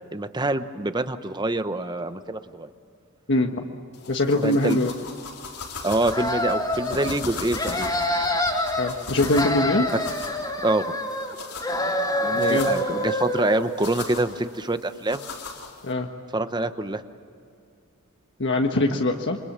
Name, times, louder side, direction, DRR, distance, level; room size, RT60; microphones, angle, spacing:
voice 1, 0.1-2.7 4.4-4.9 5.8-7.9 10.6-10.8 12.2-15.3 16.3-17.0, right 2 dB, 20° right, 10 dB, 0.9 m, -26 dB
voice 2, 3.3-3.6 4.1-4.9 8.8-9.9 12.3-12.7 15.8-16.1 18.4-19.4, left 2 dB, 55° left, 3 dB, 1.4 m, -22 dB
sound 1, 3.9-15.9, left 4 dB, 90° left, 4.0 m, -39 dB
sound 2, 6.0-7.2 7.5-8.9 9.2-11.3 11.6-13.6, left 1 dB, 20° left, 3.2 m, -26 dB
28.5 x 24.5 x 7.5 m, 2.3 s
head